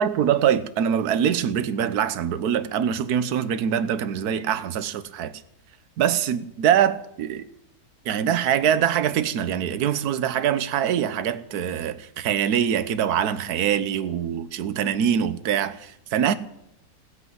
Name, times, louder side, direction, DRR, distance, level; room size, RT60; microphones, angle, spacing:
voice 1, 0.0-5.4 6.0-7.4 8.0-16.3, right 9 dB, 65° right, 1.4 m, -23 dB
16.5 x 8.1 x 9.4 m
omnidirectional pair, 1.9 m